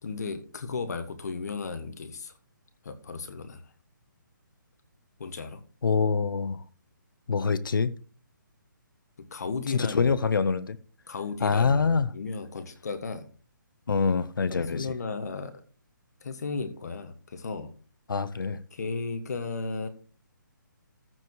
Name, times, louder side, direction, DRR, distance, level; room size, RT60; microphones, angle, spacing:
voice 1, 0.0-2.3 2.8-3.7 5.2-5.6 9.2-10.2 11.1-13.3 14.5-15.5 16.2-17.7 18.7-19.9, left 4 dB, 50° left, 1.5 m, -35 dB
voice 2, 5.8-6.6 7.3-7.9 9.7-10.8 11.4-12.1 13.9-14.9 18.1-18.6, left 5 dB, 75° left, 0.8 m, -25 dB
14.0 x 4.8 x 4.7 m
hypercardioid pair, 170°, 11 cm